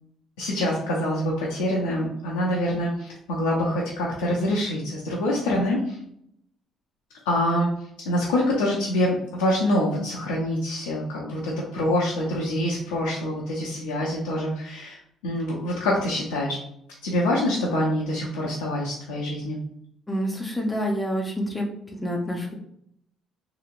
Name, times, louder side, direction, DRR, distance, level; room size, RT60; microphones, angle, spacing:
voice 1, 0.4-6.0 7.3-7.7 8.0-16.6 17.0-19.6, left 1 dB, 90° left, -4 dB, 0.5 m, -25 dB
voice 2, 20.1-22.5, equal, 20° left, 1 dB, 0.6 m, -28 dB
2.9 x 2.8 x 2.5 m, 0.72 s
hypercardioid pair, 55°, 0 cm